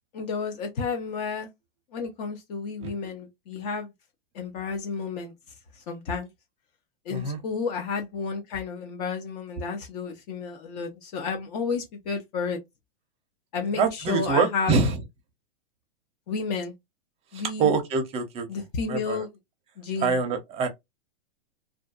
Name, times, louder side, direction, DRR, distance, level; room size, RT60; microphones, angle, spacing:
voice 1, 0.1-1.5 1.9-3.9 4.3-5.3 5.9-6.3 7.1-12.6 13.5-14.8 16.3-16.7 17.3-17.7 18.5-19.3 19.8-20.2, left 5 dB, 40° left, 0.6 m, -31 dB
voice 2, 13.8-15.0 17.3-18.4 18.9-19.2 20.0-20.7, right 4 dB, 20° right, 0.6 m, -25 dB
2.4 x 2.3 x 2.3 m
hypercardioid pair, 145°, 30 cm